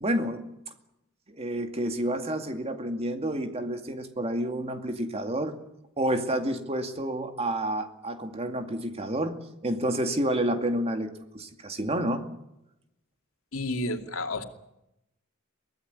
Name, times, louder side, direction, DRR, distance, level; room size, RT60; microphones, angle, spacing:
voice 1, 0.0-0.4 1.3-5.5 6.0-9.4 9.6-12.2, right 1 dB, 30° right, 6 dB, 2.3 m, -29 dB
voice 2, 13.5-14.4, left 2 dB, 75° left, 5 dB, 2.7 m, -31 dB
23.5 x 17.0 x 9.6 m, 0.88 s
head